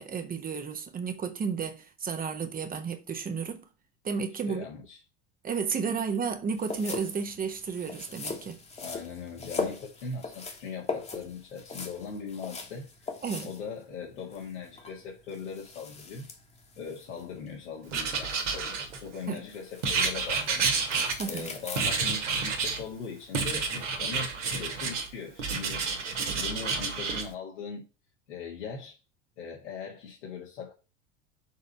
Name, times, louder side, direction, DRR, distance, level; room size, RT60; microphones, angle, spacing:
voice 1, 0.0-3.6 4.0-4.6 5.4-8.6 13.2-13.5 19.3-19.4 21.2-21.5, right 6 dB, 25° right, 1.1 m, -32 dB
voice 2, 4.5-5.0 8.8-13.1 13.4-16.3 16.8-20.8 21.2-26.0 26.3-27.8 28.3-29.0 29.4-30.7, left 5 dB, 70° left, 1.9 m, -40 dB
sound 1, 6.6-23.8, left 4 dB, 15° left, 1.5 m, -41 dB
Writing, 17.9-19.2 19.8-21.5 21.8-22.8 23.3-25.1 25.4-27.2, right 4 dB, 70° right, 1.8 m, -29 dB
6.5 x 4.0 x 6.4 m
figure-of-eight pair, 80°, 37 cm